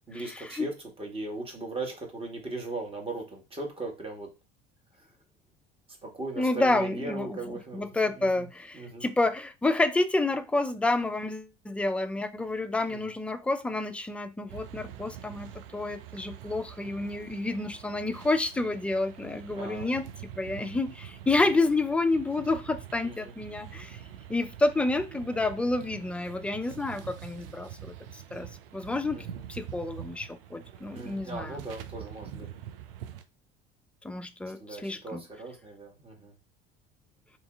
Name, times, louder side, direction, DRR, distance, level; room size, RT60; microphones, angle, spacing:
voice 1, 0.1-4.3 4.9-5.1 6.0-8.5 8.7-9.1 12.9-13.1 16.8-17.1 19.5-20.0 21.4-21.7 23.0-23.3 29.1-29.4 30.9-32.5 34.6-36.3, right 2 dB, 20° right, 1.3 m, -38 dB
voice 2, 6.4-7.4 7.7-20.0 20.4-24.0 24.3-31.6 34.0-35.2, left 2 dB, 5° left, 0.3 m, -29 dB
sound 1, 14.5-33.2, right 10 dB, 70° right, 0.5 m, -45 dB
3.0 x 2.6 x 3.6 m
figure-of-eight pair, 60°, 29 cm